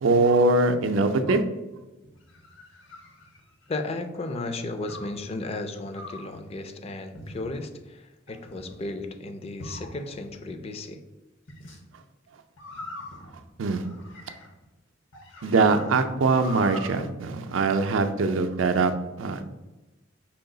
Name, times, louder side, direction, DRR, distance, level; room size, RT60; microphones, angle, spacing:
voice 1, 0.0-1.4 13.6-13.8 15.4-18.9 19.2-19.5, right 3 dB, 80° right, 7 dB, 0.4 m, -22 dB
sound 1, 2.0-3.9 4.9-5.2 5.9-6.4 7.1-7.7 8.3-8.9 9.6-10.4 11.5-11.8 12.6-14.6 15.1-17.0, left 1 dB, 80° left, 1.0 m, -42 dB
voice 2, 3.7-11.0, left 2 dB, 30° left, 7 dB, 0.4 m, -34 dB
5.6 x 2.3 x 3.8 m, 1.0 s
head